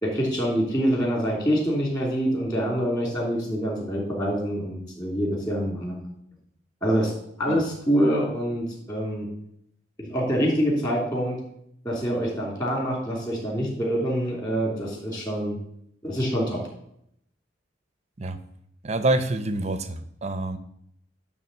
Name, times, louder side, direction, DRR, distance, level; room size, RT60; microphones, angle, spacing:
voice 1, 0.0-6.1 6.8-7.1 7.4-9.3 10.0-11.4 11.8-15.6 16.0-16.6, equal, 20° left, -3 dB, 3.0 m, -25 dB
voice 2, 18.8-20.6, right 2 dB, 35° right, 10 dB, 0.7 m, -26 dB
10.5 x 3.6 x 6.7 m, 0.72 s
head